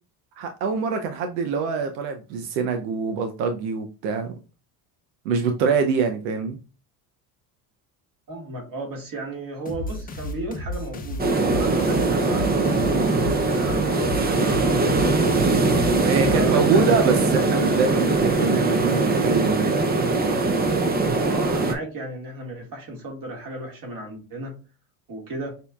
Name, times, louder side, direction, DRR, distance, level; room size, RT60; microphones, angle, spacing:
voice 1, 0.4-4.3 5.2-6.6 15.9-19.8, right 5 dB, 85° right, 0.7 m, -24 dB
voice 2, 8.3-12.6 13.4-15.1 16.3-17.0 20.8-24.6 25.1-25.5, right 2 dB, 40° right, 1.9 m, -34 dB
sound 1, 9.7-16.8, left 1 dB, 20° left, 0.8 m, -33 dB
sound 2, 11.2-21.7, right 3 dB, 20° right, 0.5 m, -21 dB
6.6 x 2.8 x 2.3 m
supercardioid pair, 90°, 49 cm